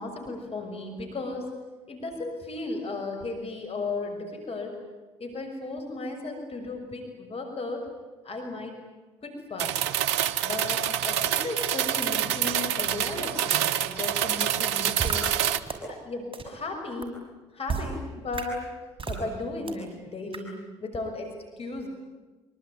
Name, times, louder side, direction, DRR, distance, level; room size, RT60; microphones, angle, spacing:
voice 1, 0.0-1.5 1.9-4.7 5.2-7.9 8.2-8.8 9.2-9.8 10.4-15.3 15.9-17.2 17.5-18.7 19.1-21.9, left 3 dB, 45° left, 4 dB, 6.3 m, -35 dB
sound 1, 9.6-15.6, right 10 dB, 85° right, 0.8 m, -27 dB
sound 2, 15.0-15.1 15.7-15.8 16.3-16.4 17.0-17.1 17.7-17.8 18.3-18.4 19.0-19.2 19.7-19.8 20.3-20.4, right 5 dB, 40° right, 6.3 m, -30 dB
25.5 x 24.5 x 9.6 m, 1.2 s
hypercardioid pair, 50°, 14 cm